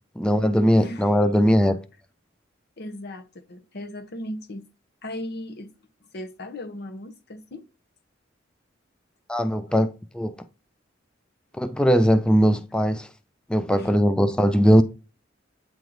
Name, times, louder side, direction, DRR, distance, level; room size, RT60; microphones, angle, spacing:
voice 1, 0.2-1.8 9.3-10.3 11.6-13.1 13.5-14.8, equal, 5° left, 0.3 m, -20 dB
voice 2, 0.8-1.6 2.8-4.7 5.0-5.7 6.1-7.6 9.7-9.8 13.8-13.9, left 1 dB, 55° left, 0.8 m, -37 dB
8.9 x 3.8 x 3.0 m
head